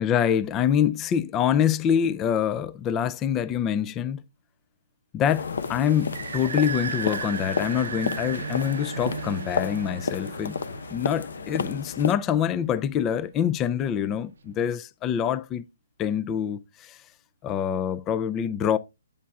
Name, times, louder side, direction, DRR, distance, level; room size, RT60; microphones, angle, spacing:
voice 1, 0.0-4.2 5.1-10.6 10.9-15.6 16.0-17.0 17.4-18.8, left 9 dB, 15° left, 0.3 m, -25 dB
sound 1, 5.3-12.1, left 5 dB, 65° left, 0.7 m, -32 dB
sound 2, 5.3-12.6, right 7 dB, 65° right, 0.6 m, -36 dB
8.6 x 8.2 x 2.3 m
hypercardioid pair, 165°, 0 cm